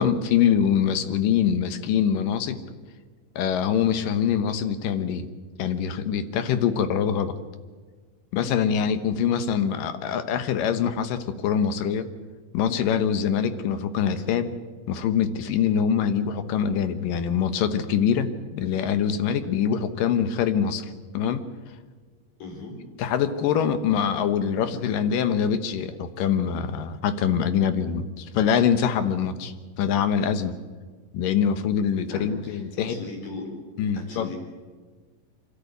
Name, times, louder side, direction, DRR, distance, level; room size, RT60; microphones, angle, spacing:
voice 1, 0.0-2.6 3.4-5.3 5.6-7.3 8.3-12.1 12.5-14.5 14.9-21.4 23.0-30.5 31.1-33.0 33.8-34.3, left 8 dB, 80° left, 10 dB, 2.8 m, -24 dB
voice 2, 22.4-22.8 32.0-33.5 33.9-34.4, left 2 dB, 55° left, 2 dB, 5.5 m, -38 dB
26.0 x 12.5 x 9.3 m, 1.5 s
omnidirectional pair, 3.9 m